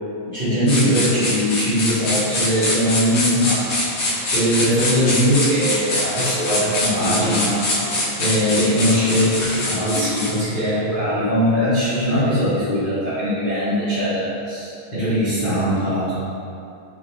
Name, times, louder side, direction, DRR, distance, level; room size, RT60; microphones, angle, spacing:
voice 1, 0.2-3.9 4.2-16.1, equal, 50° left, -16 dB, 0.6 m, -21 dB
sound 1, 0.7-10.4, left 1 dB, 80° left, 1.1 m, -24 dB
4.4 x 4.0 x 3.0 m, 2.6 s
omnidirectional pair, 3.6 m